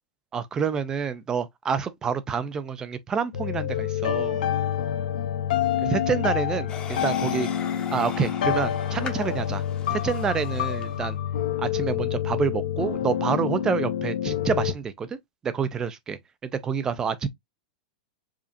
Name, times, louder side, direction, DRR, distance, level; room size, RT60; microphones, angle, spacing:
voice 1, 0.3-4.4 5.8-7.5 7.9-9.6 9.9-11.2 11.6-15.2 15.4-17.3, right 6 dB, 15° right, 0.4 m, -28 dB
sound 1, 3.3-14.7, left 10 dB, 75° left, 0.7 m, -27 dB
sound 2, 6.7-11.0, left 6 dB, 20° left, 0.7 m, -39 dB
4.9 x 2.4 x 2.7 m
supercardioid pair, 155°, 4 cm